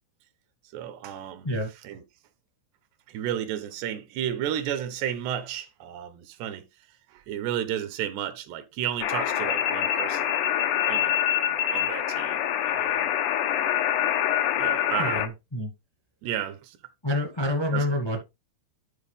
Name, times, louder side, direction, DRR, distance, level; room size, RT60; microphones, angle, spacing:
voice 1, 0.7-1.5 1.8-2.0 3.1-6.7 7.1-10.3 10.9-11.1 11.6-13.1 14.6-15.2 16.2-16.8 17.7-17.9, right 10 dB, 80° right, 3.0 m, -32 dB
sound 1, 9.0-15.3, left 11 dB, 85° left, 1.8 m, -25 dB
voice 2, 15.0-15.7 17.0-18.2, left 1 dB, 20° left, 0.7 m, -27 dB
12.0 x 4.5 x 3.5 m
omnidirectional pair, 5.0 m